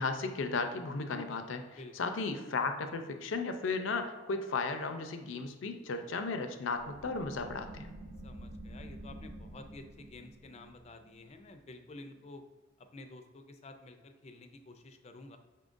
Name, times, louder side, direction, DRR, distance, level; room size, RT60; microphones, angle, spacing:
voice 1, 0.0-7.9, left 4 dB, 85° left, 7 dB, 0.5 m, -35 dB
sound 1, 6.8-12.1, right 1 dB, 60° right, 0.7 m, -49 dB
voice 2, 8.2-12.4 12.9-15.4, left 2 dB, 35° left, 7 dB, 0.4 m, -51 dB
5.6 x 3.7 x 2.5 m, 1.3 s
head